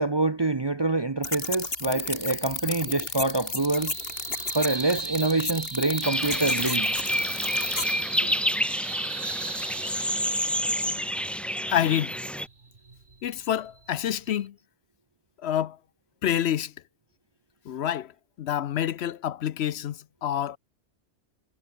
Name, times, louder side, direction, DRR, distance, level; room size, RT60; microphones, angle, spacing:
voice 1, 0.0-3.9 4.5-6.9, right 2 dB, 25° right, 0.8 m, -26 dB
sound 1, 1.2-7.9, left 3 dB, 60° left, 3.3 m, -33 dB
sound 2, 1.8-14.5, right 3 dB, 55° right, 2.4 m, -39 dB
sound 3, 6.0-12.5, equal, ahead, 2.1 m, -28 dB
voice 2, 11.7-12.2 13.2-14.5 15.4-15.8 16.2-16.7 17.7-18.1 18.4-20.6, left 10 dB, 75° left, 0.9 m, -27 dB
omnidirectional pair, 1.1 m